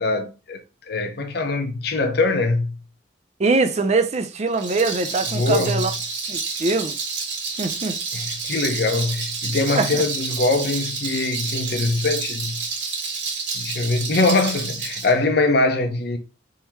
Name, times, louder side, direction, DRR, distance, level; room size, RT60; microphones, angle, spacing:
voice 1, 0.0-2.7 5.3-5.9 8.1-12.6 13.5-16.2, left 3 dB, 55° left, 0.8 m, -22 dB
voice 2, 3.4-5.9 6.3-6.9 7.6-8.0 9.7-10.0, right 3 dB, 35° right, 0.5 m, -22 dB
Rattle, 4.5-15.1, right 4 dB, 70° right, 1.6 m, -29 dB
3.7 x 2.8 x 4.4 m
head